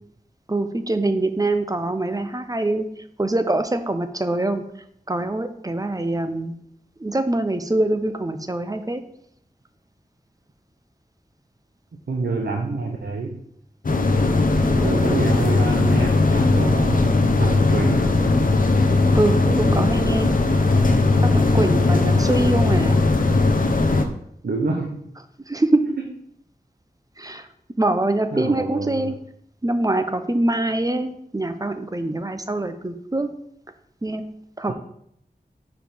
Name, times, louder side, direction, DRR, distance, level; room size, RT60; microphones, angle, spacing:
voice 1, 0.5-2.9 3.2-4.6 5.1-6.5 7.0-9.0 14.6-15.3 19.1-20.3 21.2-23.1 25.5-25.8 27.2-27.5 27.8-29.1 29.6-33.3 34.0-34.2 34.6-34.7, right 2 dB, 20° right, 9 dB, 0.5 m, -24 dB
voice 2, 12.1-13.4 14.6-18.1 24.4-25.1 28.3-29.1 34.7-34.8, right 3 dB, 90° right, 1 dB, 0.7 m, -28 dB
sound 1, 13.8-24.0, left 3 dB, 60° left, 0.6 m, -18 dB
5.8 x 4.9 x 3.4 m, 0.71 s
wide cardioid pair, 65°, 16 cm